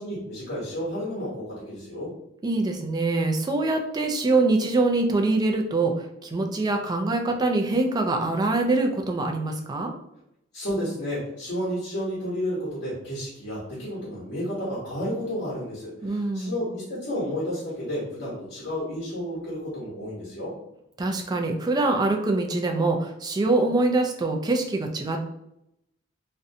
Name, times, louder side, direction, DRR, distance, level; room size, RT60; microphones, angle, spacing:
voice 1, 0.0-2.1 10.5-20.5, equal, 70° left, -8 dB, 1.0 m, -31 dB
voice 2, 2.4-9.9 16.0-16.6 21.0-25.3, right 2 dB, 20° right, 3 dB, 0.3 m, -24 dB
2.5 x 2.1 x 2.6 m, 0.81 s
head